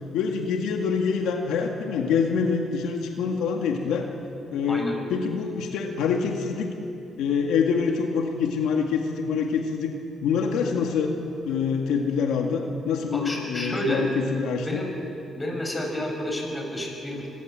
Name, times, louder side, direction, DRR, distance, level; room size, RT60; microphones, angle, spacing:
voice 1, 0.1-4.1 4.5-6.7 7.2-9.9 10.2-11.1 11.4-14.8, left 6 dB, 90° left, 2 dB, 2.0 m, -25 dB
voice 2, 13.1-14.0 14.6-14.9 15.3-17.3, equal, 20° left, 2 dB, 5.7 m, -30 dB
24.5 x 18.5 x 7.7 m, 2.7 s
cardioid pair, 90°, 0 cm